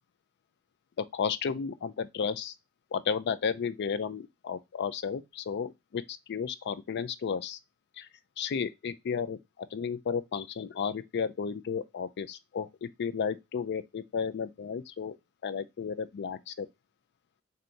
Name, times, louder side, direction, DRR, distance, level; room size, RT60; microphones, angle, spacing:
voice 1, 1.0-2.5 2.9-7.6 8.0-8.1 8.4-15.2 15.4-16.7, left 6 dB, 50° left, 0.4 m, -33 dB
4.4 x 2.7 x 2.5 m
head